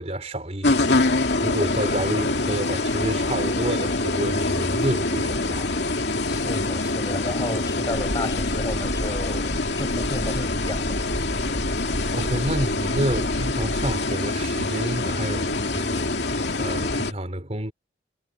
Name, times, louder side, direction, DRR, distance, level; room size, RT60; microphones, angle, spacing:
voice 1, 0.0-5.7 6.4-6.5 12.1-17.7, right 1 dB, 35° right, 3.8 m, -29 dB
sound 1, 0.6-17.1, left 2 dB, 65° left, 2.7 m, -25 dB
voice 2, 6.3-9.5 9.8-11.0, left 1 dB, 20° left, 7.3 m, -32 dB
sound 2, 7.9-14.0, equal, 75° right, 4.4 m, -33 dB
head